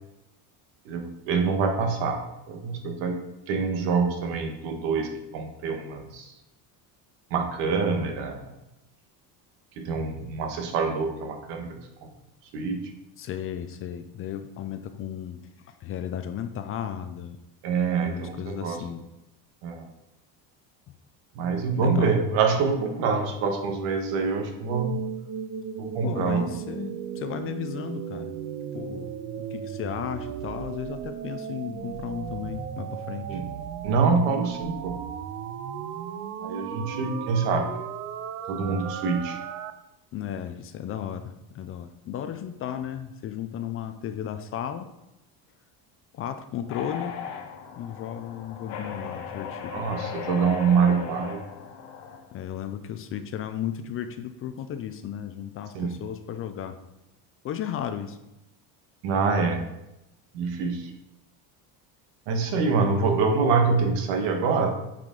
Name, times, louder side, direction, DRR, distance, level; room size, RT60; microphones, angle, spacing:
voice 1, 0.8-2.2 2.5-3.2 3.5-6.3 7.3-8.5 9.8-12.1 12.5-12.8 17.6-18.8 19.6-19.9 21.3-24.9 25.8-26.5 33.3-33.5 33.8-35.0 36.4-37.7 38.5-39.4 49.7-51.4 55.7-55.9 59.0-59.6 60.3-60.9 62.3-64.7, right 5 dB, 85° right, 3 dB, 1.5 m, -25 dB
voice 2, 13.2-17.4 18.0-19.0 21.8-22.2 26.0-28.3 28.7-33.4 40.1-44.9 46.1-47.2 47.7-49.8 52.3-56.8 57.4-58.2, left 9 dB, 35° left, 9 dB, 0.4 m, -34 dB
sound 1, 24.7-39.7, right 8 dB, 40° right, 0.4 m, -36 dB
sound 2, 46.7-52.3, left 7 dB, 65° left, 1.2 m, -37 dB
8.8 x 5.0 x 3.8 m, 0.90 s
cardioid pair, 155°, 42 cm